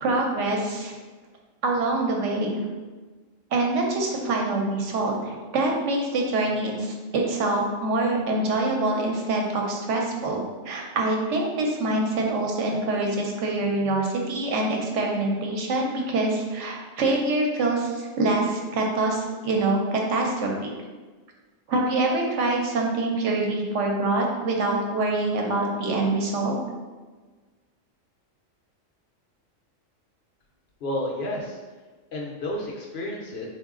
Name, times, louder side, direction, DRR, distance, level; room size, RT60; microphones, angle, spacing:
voice 1, 0.0-0.9 1.6-2.6 3.5-20.7 21.7-26.5, right 2 dB, 70° right, 0 dB, 0.9 m, -25 dB
voice 2, 30.8-31.6 32.1-33.5, left 1 dB, 60° left, -1 dB, 0.7 m, -31 dB
3.9 x 2.4 x 3.6 m, 1.3 s
omnidirectional pair, 1.3 m